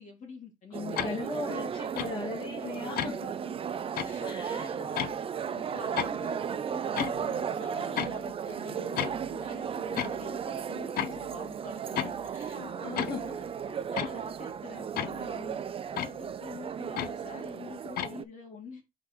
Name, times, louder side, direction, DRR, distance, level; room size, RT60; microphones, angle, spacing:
voice 1, 0.0-1.9 3.0-3.2 4.0-12.6 13.0-15.6 16.0-18.8, left 4 dB, 50° left, 2.9 m, -47 dB
voice 2, 0.7-3.5 4.2-4.8 12.5-13.4 13.9-14.1, left 4 dB, 30° left, 2.1 m, -38 dB
sound 1, 0.7-18.2, right 7 dB, 35° right, 0.5 m, -35 dB
sound 2, 1.0-1.1 2.0-2.1 3.0-3.1 4.0-4.1 5.0-5.2 6.0-6.1 7.0-7.2 8.0-8.2 9.0-9.3 10.0-10.2 11.0-11.3 12.0-12.3 13.0-13.3 14.0-14.2 15.0-15.3 16.0-16.2 17.0-17.2 18.0-18.1, left 10 dB, 65° left, 0.6 m, -33 dB
6.1 x 5.0 x 3.2 m
cardioid pair, 110°, 17 cm